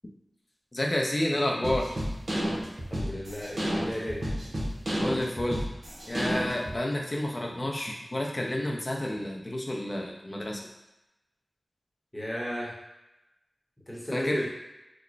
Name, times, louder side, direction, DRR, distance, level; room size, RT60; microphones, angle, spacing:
voice 1, 0.7-2.0 5.0-5.6 6.1-10.6 14.1-14.4, left 1 dB, 35° left, 0 dB, 0.6 m, -30 dB
sound 1, 1.6-6.8, equal, 70° right, 0.9 m, -31 dB
voice 2, 2.9-4.2 12.1-12.7 13.9-14.5, equal, 15° left, -4 dB, 1.0 m, -34 dB
3.0 x 2.2 x 3.9 m, 0.97 s
wide cardioid pair, 60°, 0 cm